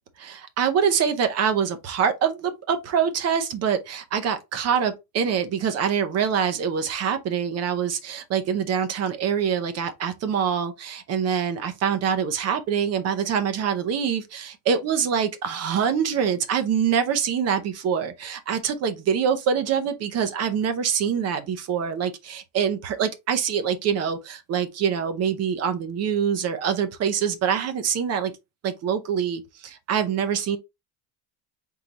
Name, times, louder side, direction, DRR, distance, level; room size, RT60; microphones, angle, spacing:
voice 1, 0.2-28.3 28.6-30.6, right 7 dB, 35° right, 0.6 m, -25 dB
3.9 x 3.8 x 2.9 m
cardioid pair, 175°, 47 cm